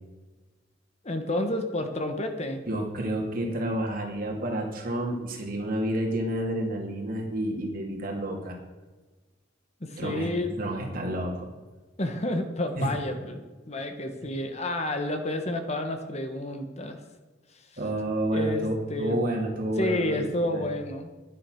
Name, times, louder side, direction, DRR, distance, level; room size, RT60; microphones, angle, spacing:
voice 1, 1.0-2.6 9.8-10.5 12.0-17.0 18.3-18.6 18.9-19.2 19.8-21.1, left 1 dB, 35° left, 6 dB, 1.3 m, -30 dB
voice 2, 2.7-8.6 10.0-11.5 12.8-12.9 17.8-20.3 20.5-20.7, right 1 dB, 50° right, 0 dB, 2.8 m, -30 dB
11.5 x 9.7 x 6.4 m, 1.3 s
head